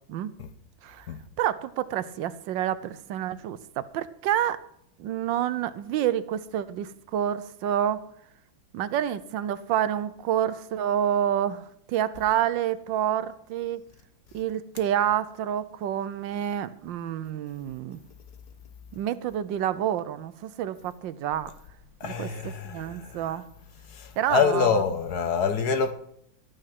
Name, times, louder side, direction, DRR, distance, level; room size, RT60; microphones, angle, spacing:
voice 1, 1.4-4.6 5.0-8.0 8.7-13.8 14.3-18.0 18.9-21.5 22.0-23.4 24.2-24.8, right 10 dB, 80° right, 1.3 m, -28 dB
voice 2, 22.0-23.2 23.9-25.9, left 6 dB, 60° left, 1.4 m, -26 dB
13.0 x 9.1 x 5.9 m
omnidirectional pair, 2.1 m